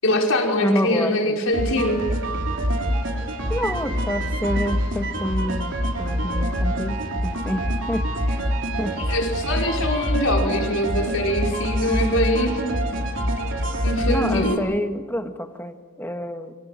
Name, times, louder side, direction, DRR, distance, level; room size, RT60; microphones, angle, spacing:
voice 1, 0.0-2.0 9.0-12.6 13.8-14.6, left 1 dB, 75° left, 0 dB, 5.4 m, -23 dB
voice 2, 0.6-1.4 3.5-8.4 8.8-9.0 14.1-16.6, equal, 10° left, 6 dB, 1.7 m, -28 dB
sound 1, 1.5-14.6, equal, 60° right, 3.8 m, -25 dB
27.5 x 26.0 x 7.7 m, 1.4 s
head